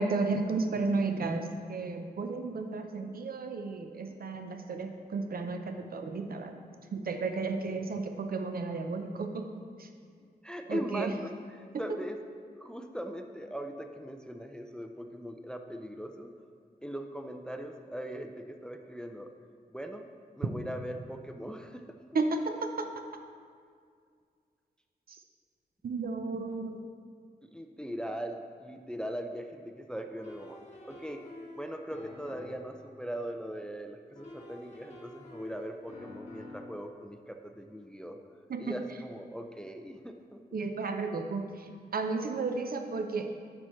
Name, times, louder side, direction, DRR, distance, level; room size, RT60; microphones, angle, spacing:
voice 1, 0.0-6.5 6.9-9.5 9.8-9.9 10.7-11.1 22.1-22.9 25.1-25.2 25.8-26.8 38.5-38.7 40.5-41.5 41.9-43.3, right 3 dB, 60° right, 6 dB, 0.6 m, -33 dB
voice 2, 10.4-12.2 12.6-16.3 16.8-19.3 19.7-20.0 20.4-21.8 27.4-30.6 30.8-31.2 31.6-38.2 38.6-40.4, equal, 5° left, 5 dB, 0.4 m, -40 dB
sound 1, 30.2-32.8 34.2-36.8, left 2 dB, 40° left, 1.5 m, -48 dB
9.8 x 6.2 x 3.1 m, 2.2 s
wide cardioid pair, 105°, 17 cm